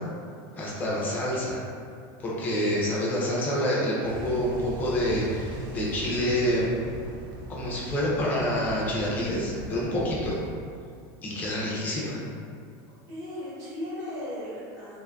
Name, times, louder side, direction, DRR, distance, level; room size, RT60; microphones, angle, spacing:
voice 1, 0.5-1.6 2.2-6.7 7.5-10.4 11.2-12.2, equal, 15° left, -6 dB, 0.4 m, -27 dB
sound 1, 4.0-10.5, right 2 dB, 70° right, 0.4 m, -39 dB
voice 2, 13.1-15.0, left 1 dB, 25° right, -11 dB, 0.9 m, -36 dB
2.5 x 2.4 x 2.2 m, 2.3 s
supercardioid pair, 180°, 12 cm